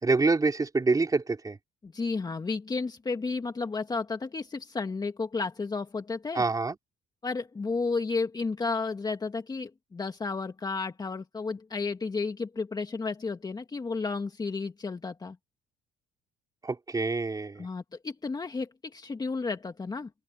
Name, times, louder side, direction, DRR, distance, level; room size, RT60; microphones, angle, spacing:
voice 1, 0.0-1.6 6.3-6.8 16.6-17.7, right 3 dB, 20° right, 4.8 m, -26 dB
voice 2, 1.8-6.4 7.2-15.4 17.6-20.1, left 4 dB, 25° left, 2.0 m, -32 dB
open air
cardioid pair, 110°, 17 cm